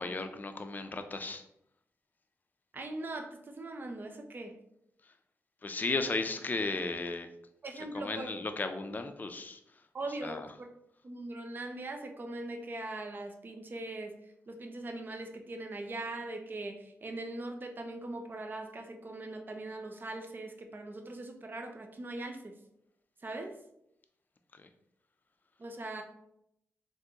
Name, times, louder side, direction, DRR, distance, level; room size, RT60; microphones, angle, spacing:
voice 1, 0.0-1.4 5.6-7.3 7.9-9.6 10.2-10.5 24.5-24.7, left 3 dB, 35° left, 8 dB, 0.4 m, -35 dB
voice 2, 2.7-4.5 7.6-8.3 9.9-10.4 11.0-14.1 14.5-22.6 23.2-23.6 25.6-26.0, right 2 dB, 40° right, 4 dB, 0.5 m, -40 dB
3.6 x 2.6 x 2.8 m, 0.78 s
cardioid pair, 70°, 5 cm